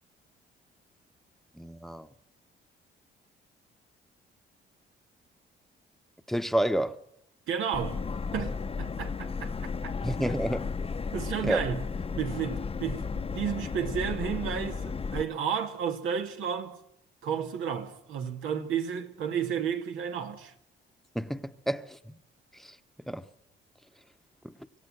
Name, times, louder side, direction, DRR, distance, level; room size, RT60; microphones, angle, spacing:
voice 1, 1.6-2.1 6.3-7.0 10.0-10.7 11.4-11.6 21.1-22.0 23.1-23.2 24.4-24.5, right 1 dB, ahead, 1.0 m, -29 dB
voice 2, 7.5-8.0 8.3-10.0 11.1-11.9 12.2-16.8 17.2-20.5, right 8 dB, 85° right, 2.3 m, -32 dB
Subway metro underground, 7.7-15.2, left 5 dB, 30° left, 0.8 m, -34 dB
26.0 x 16.0 x 6.4 m
cardioid pair, 90°, 20 cm